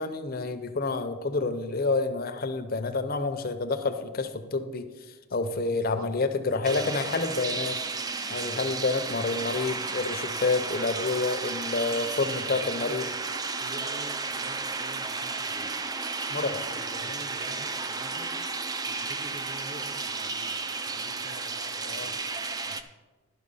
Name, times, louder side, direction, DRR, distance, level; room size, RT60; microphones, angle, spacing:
voice 1, 0.0-7.8 8.3-13.1 16.3-16.6 16.9-17.1 18.9-19.1 21.8-22.2 22.7-22.8, left 3 dB, 40° left, 9 dB, 0.6 m, -29 dB
sound 1, 6.6-22.8, right 4 dB, 15° right, 0.3 m, -33 dB
voice 2, 6.8-7.2 8.4-9.0 12.5-13.2 13.6-15.9 16.3-18.4 18.9-22.3, right 1 dB, 40° right, 5 dB, 0.9 m, -47 dB
11.5 x 5.7 x 5.5 m, 1.3 s
head